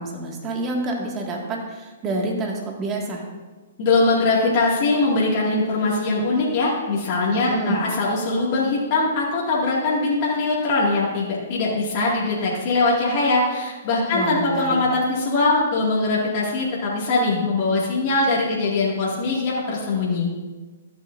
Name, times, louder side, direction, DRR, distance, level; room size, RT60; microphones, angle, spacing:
voice 1, 0.0-3.2 7.3-7.8 14.1-14.8, right 2 dB, 25° right, 0 dB, 2.0 m, -28 dB
voice 2, 3.8-20.3, left 3 dB, 40° left, -5 dB, 2.2 m, -21 dB
13.5 x 9.0 x 2.7 m, 1.3 s
hypercardioid pair, 125°, 0 cm